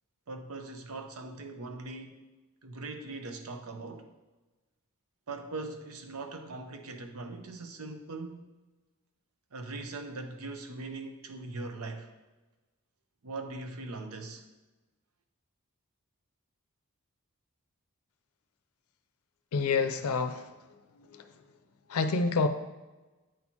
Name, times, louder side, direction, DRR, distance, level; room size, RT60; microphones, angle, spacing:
voice 1, 0.3-2.2 2.6-4.1 5.3-8.4 9.5-12.1 13.2-14.4, right 3 dB, 85° right, 6 dB, 0.7 m, -40 dB
voice 2, 19.5-20.4 21.9-22.5, left 4 dB, 80° left, 9 dB, 0.5 m, -27 dB
8.8 x 4.4 x 2.8 m, 1.2 s
head